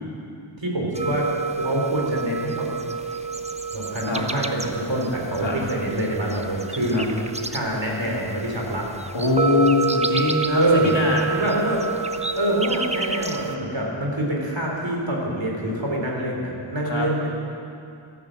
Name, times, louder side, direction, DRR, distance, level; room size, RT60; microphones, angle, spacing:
voice 1, 0.6-2.7 3.7-7.0 7.4-8.8 10.5-10.9 11.3-11.8 12.4-17.3, right 1 dB, 60° right, -2 dB, 3.7 m, -25 dB
sound 1, 0.9-13.6, right 4 dB, 15° right, 0.8 m, -29 dB
voice 2, 9.1-11.3 16.8-17.1, left 3 dB, 60° left, -2 dB, 2.8 m, -22 dB
13.5 x 12.0 x 7.6 m, 2.5 s
wide cardioid pair, 50°, 50 cm